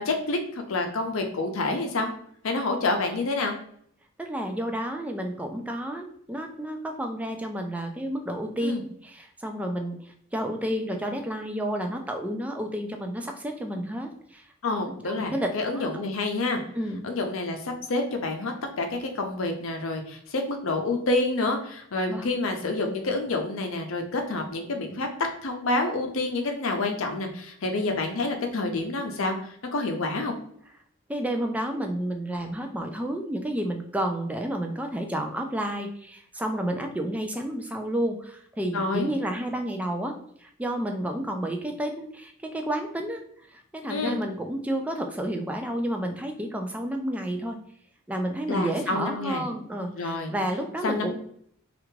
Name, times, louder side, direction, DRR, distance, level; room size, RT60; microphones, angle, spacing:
voice 1, 0.0-2.1 2.4-3.6 8.6-8.8 14.6-16.6 17.0-30.3 38.7-39.1 43.9-44.2 48.5-49.4 50.0-50.3 50.8-51.1, left 2 dB, 75° left, 4 dB, 0.6 m, -28 dB
voice 2, 4.2-8.7 9.0-14.5 15.0-16.0 16.7-17.1 22.1-22.3 31.1-40.1 40.4-43.2 43.5-47.6 48.1-51.1, right 1 dB, 5° right, 4 dB, 0.3 m, -31 dB
3.3 x 2.4 x 3.1 m, 0.65 s
head